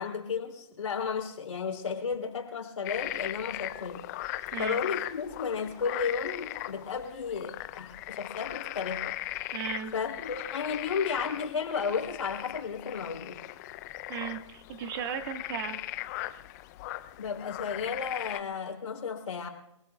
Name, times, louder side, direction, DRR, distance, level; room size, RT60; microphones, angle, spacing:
voice 1, 0.0-4.0 4.6-9.2 9.9-13.4 17.2-19.5, left 6 dB, 80° left, 3.4 m, -33 dB
sound 1, 2.8-18.4, left 16 dB, 35° left, 0.6 m, -38 dB
voice 2, 4.5-4.8 9.5-9.9 14.1-15.8, right 8 dB, 45° right, 1.6 m, -36 dB
29.0 x 19.5 x 2.3 m
hypercardioid pair, 140°, 16 cm